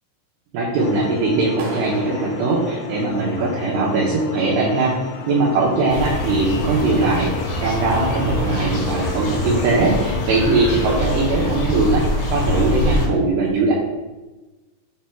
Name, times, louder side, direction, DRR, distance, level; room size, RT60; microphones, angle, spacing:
voice 1, 0.5-4.9 5.3-13.7, right 3 dB, 90° right, -6 dB, 2.3 m, -20 dB
sound 1, 0.8-11.7, left 7 dB, 85° left, 3.4 m, -33 dB
Clapping, 1.6-3.6, right 3 dB, 75° right, 2.7 m, -37 dB
sound 2, 5.9-13.1, left 1 dB, 60° left, 2.5 m, -24 dB
11.0 x 4.4 x 2.3 m, 1.2 s
omnidirectional pair, 5.9 m